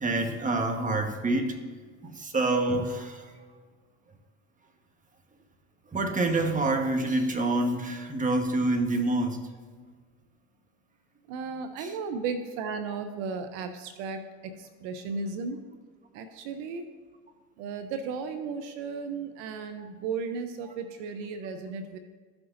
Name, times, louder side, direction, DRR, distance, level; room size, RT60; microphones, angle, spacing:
voice 1, 0.0-1.5 2.0-3.3 5.9-9.5 11.8-12.0 19.8-19.9, right 2 dB, 20° right, 4 dB, 1.4 m, -27 dB
voice 2, 11.3-14.5 14.8-15.6 16.1-16.8 17.6-22.0, right 5 dB, 75° right, 8 dB, 0.9 m, -35 dB
15.0 x 6.1 x 2.7 m, 1.5 s
supercardioid pair, 85°, 38 cm